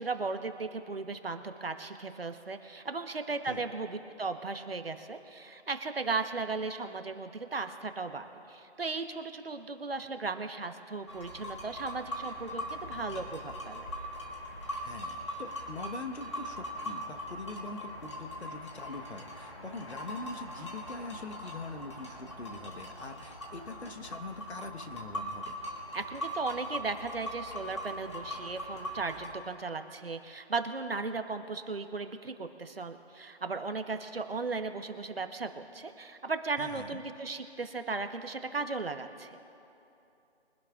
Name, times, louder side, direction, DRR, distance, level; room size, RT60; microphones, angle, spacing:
voice 1, 0.0-13.9 25.9-39.4, right 4 dB, 60° right, 7 dB, 1.2 m, -36 dB
sound 1, 11.1-29.4, equal, 25° left, 1.6 m, -41 dB
voice 2, 14.8-25.6 36.6-37.0, left 3 dB, 70° left, 7 dB, 1.4 m, -43 dB
24.0 x 11.5 x 2.5 m, 2.8 s
figure-of-eight pair, 175°, 34 cm